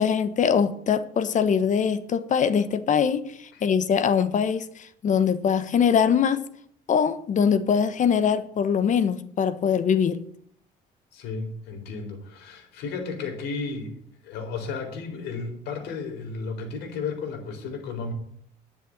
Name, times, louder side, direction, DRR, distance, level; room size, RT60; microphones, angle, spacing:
voice 1, 0.0-6.4 6.9-10.2, left 7 dB, 45° left, 13 dB, 1.1 m, -22 dB
voice 2, 11.1-18.1, left 4 dB, 80° left, 4 dB, 4.0 m, -33 dB
11.5 x 6.9 x 9.4 m, 0.64 s
cardioid pair, 110°, 17 cm